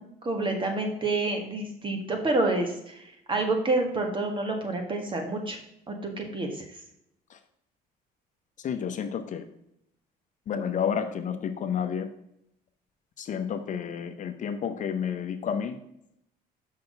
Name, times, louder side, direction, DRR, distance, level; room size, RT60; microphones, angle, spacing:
voice 1, 0.0-5.6 5.9-6.6, right 2 dB, 30° right, 3 dB, 1.8 m, -28 dB
voice 2, 8.6-9.4 10.5-12.1 13.2-15.8, left 7 dB, 50° left, 8 dB, 0.8 m, -30 dB
6.4 x 5.8 x 5.3 m, 0.78 s
cardioid pair, 110°, 17 cm